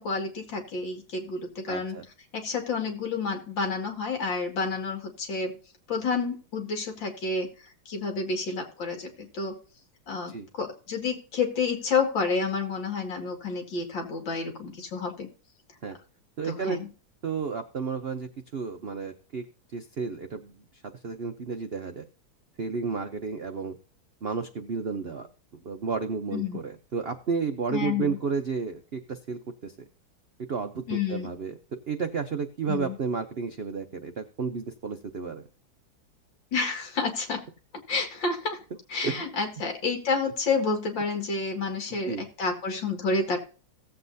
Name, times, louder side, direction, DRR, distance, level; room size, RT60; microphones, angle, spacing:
voice 1, 0.0-2.0 2.3-5.6 5.9-7.5 7.9-9.6 10.1-15.3 16.4-16.9 26.3-26.6 27.7-28.2 30.9-31.3 32.7-32.9 36.5-37.4 37.9-38.6 38.9-43.4, left 4 dB, 70° left, 4 dB, 2.7 m, -29 dB
voice 2, 1.7-2.0 10.3-10.5 15.8-16.0 16.4-16.8 17.2-19.4 19.7-20.6 21.0-22.0 22.6-23.7 24.2-25.3 25.5-29.9 30.5-31.6 31.9-35.4 39.0-39.2 41.9-42.2, right 5 dB, 80° right, 6 dB, 0.5 m, -32 dB
17.0 x 7.8 x 2.7 m, 0.38 s
omnidirectional pair, 2.1 m